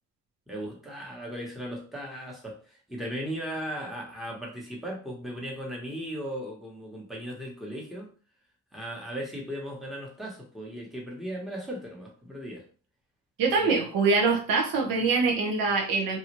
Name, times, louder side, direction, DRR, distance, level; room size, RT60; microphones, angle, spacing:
voice 1, 0.5-8.1 8.7-12.6 13.6-13.8, equal, ahead, -2 dB, 1.0 m, -37 dB
voice 2, 13.4-16.2, right 4 dB, 80° right, 0 dB, 1.0 m, -24 dB
3.0 x 2.4 x 2.9 m, 0.39 s
cardioid pair, 115°, 34 cm